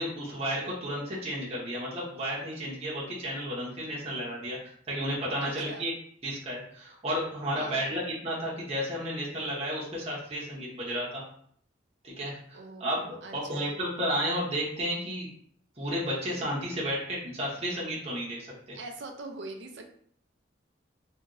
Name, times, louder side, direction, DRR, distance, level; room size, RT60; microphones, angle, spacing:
voice 1, 0.0-4.6 4.9-5.9 6.2-11.2 12.0-15.3 15.8-18.4 18.7-18.8, equal, 30° right, -5 dB, 0.8 m, -32 dB
voice 2, 5.4-5.9 7.5-7.9 12.5-13.7 18.7-19.9, right 2 dB, 65° right, 4 dB, 0.5 m, -43 dB
2.8 x 2.6 x 2.9 m, 0.63 s
head